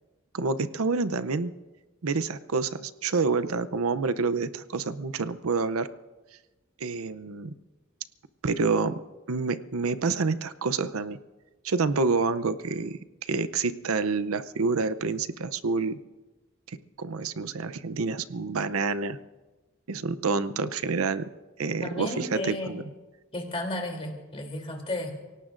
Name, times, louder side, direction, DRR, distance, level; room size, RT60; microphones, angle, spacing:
voice 1, 0.3-1.5 2.0-5.9 6.8-7.5 8.4-9.0 9.3-11.2 11.6-15.9 16.7-19.2 19.9-21.3 21.6-22.8, right 4 dB, 80° right, 12 dB, 0.6 m, -28 dB
voice 2, 21.8-22.8 23.3-25.1, left 1 dB, 25° left, 1 dB, 3.1 m, -33 dB
30.0 x 18.0 x 2.6 m, 1.2 s
head